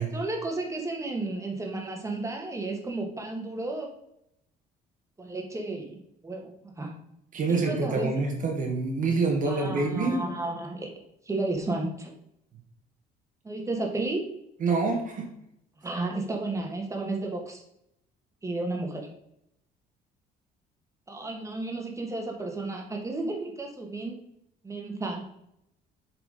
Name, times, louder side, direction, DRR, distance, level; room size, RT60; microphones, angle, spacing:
voice 1, 0.1-3.9 5.2-6.9 7.5-8.1 9.5-10.9 11.3-12.1 13.4-14.3 15.8-17.6 18.4-19.1 21.1-24.1 24.6-25.2, right 2 dB, 15° right, 1 dB, 2.0 m, -32 dB
voice 2, 7.3-10.2 14.6-15.3, right 3 dB, 50° right, 1 dB, 1.7 m, -26 dB
7.8 x 4.9 x 5.1 m, 0.78 s
cardioid pair, 110°, 17 cm